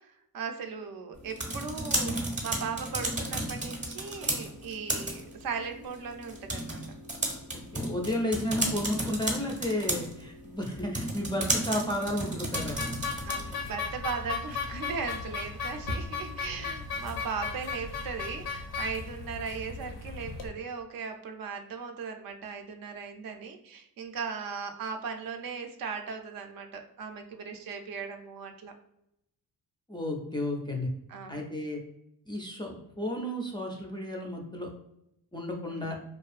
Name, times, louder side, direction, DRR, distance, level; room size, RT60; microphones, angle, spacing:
voice 1, 0.0-7.0 13.3-28.7 31.1-31.5 35.7-36.0, right 5 dB, 65° right, 6 dB, 0.5 m, -38 dB
sound 1, 1.1-13.7, right 1 dB, 20° right, 0.6 m, -34 dB
voice 2, 7.7-12.8 29.9-30.9 31.3-31.8 32.3-34.7 35.3-36.0, left 1 dB, 15° left, 0 dB, 0.3 m, -32 dB
sound 2, 12.5-20.5, left 5 dB, 85° left, 0.5 m, -36 dB
2.5 x 2.3 x 2.4 m, 0.81 s
cardioid pair, 110°, 37 cm